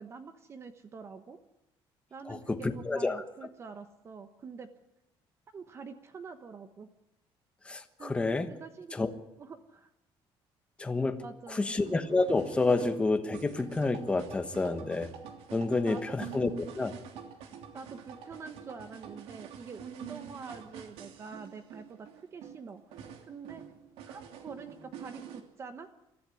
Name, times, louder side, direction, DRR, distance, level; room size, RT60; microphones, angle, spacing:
voice 1, 0.0-1.4 2.1-4.7 5.5-6.9 8.0-8.2 8.5-8.9 9.4-9.9 11.2-11.8 15.9-16.2 17.7-23.6 24.0-25.9, right 5 dB, 25° right, 8 dB, 1.1 m, -46 dB
voice 2, 2.3-3.2 7.6-8.5 8.9-9.1 10.8-15.1 15.5-16.5 16.8-17.0, left 3 dB, 10° left, 7 dB, 1.2 m, -29 dB
sound 1, 11.8-25.4, right 8 dB, 85° right, 3.0 m, -47 dB
23.0 x 14.0 x 9.8 m, 0.91 s
cardioid pair, 170°, 10 cm